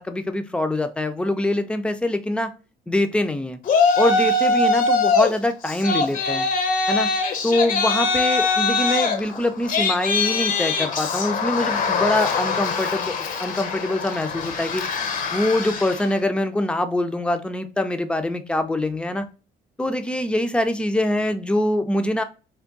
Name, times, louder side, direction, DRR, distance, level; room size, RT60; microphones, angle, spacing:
voice 1, 0.0-2.5 2.9-3.6 4.0-6.5 6.9-7.1 7.4-13.1 13.4-14.8 15.3-19.3 19.8-22.2, left 1 dB, 5° left, 9 dB, 0.4 m, -24 dB
Yell, 3.7-5.3 5.7-16.1, left 4 dB, 55° left, 0.6 m, -22 dB
3.4 x 2.2 x 3.8 m, 0.33 s
cardioid pair, 110°, 17 cm